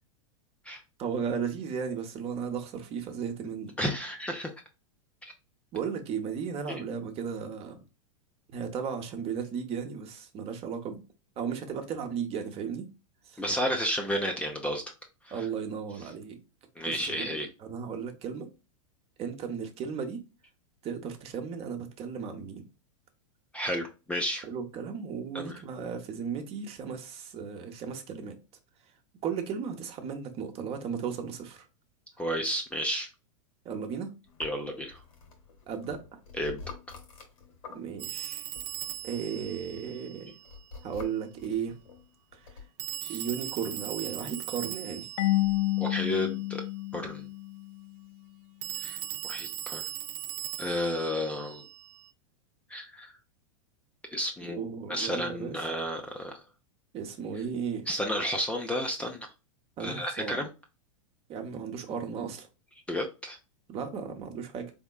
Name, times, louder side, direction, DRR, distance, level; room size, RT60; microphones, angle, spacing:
voice 1, 1.0-3.7 5.7-7.8 8.5-11.0 11.4-12.9 13.2-13.4 15.3-16.4 16.9-17.2 17.6-18.5 19.2-20.2 20.8-22.6 24.4-28.4 29.2-31.7 33.6-34.1 35.7-36.2 37.7-38.5 39.0-40.3 40.8-41.8 42.3-42.5 43.1-45.1 54.5-55.7 56.9-57.9 59.8-60.4 61.3-62.5 63.7-64.7, right 7 dB, 35° right, 1.0 m, -35 dB
voice 2, 3.8-4.5 5.2-5.3 6.7-6.8 13.4-14.8 15.2-15.5 16.8-17.5 23.5-24.4 25.3-25.6 32.2-33.1 34.4-35.0 36.4-36.6 43.0-43.2 45.8-46.6 46.9-47.3 48.8-49.0 49.2-49.8 50.6-51.6 52.7-53.1 54.1-54.6 54.9-56.3 57.9-59.3 59.8-60.5 62.9-63.4, equal, 5° left, 0.7 m, -32 dB
sound 1, 34.2-38.2 38.5-42.7, left 4 dB, 85° left, 2.0 m, -48 dB
Telephone, 38.0-40.6 42.8-46.4 48.6-52.1, right 12 dB, 55° right, 0.5 m, -39 dB
Marimba xylophone / Wood, 45.2-47.9, left 19 dB, 50° left, 0.5 m, -29 dB
4.2 x 3.6 x 2.3 m
hypercardioid pair, 120°, 17 cm